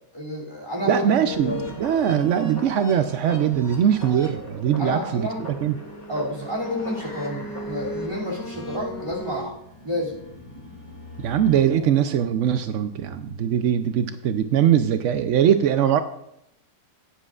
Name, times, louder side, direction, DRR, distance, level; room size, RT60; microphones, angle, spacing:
voice 1, 0.1-1.7 4.8-5.4 6.1-9.6 9.8-10.2, equal, 15° right, -2 dB, 2.7 m, -29 dB
voice 2, 0.9-5.3 5.6-5.7 11.2-16.0, right 9 dB, 75° right, 9 dB, 0.6 m, -21 dB
sound 1, 1.3-12.2, left 1 dB, 15° left, 2.2 m, -38 dB
15.5 x 9.9 x 2.4 m, 0.78 s
omnidirectional pair, 1.9 m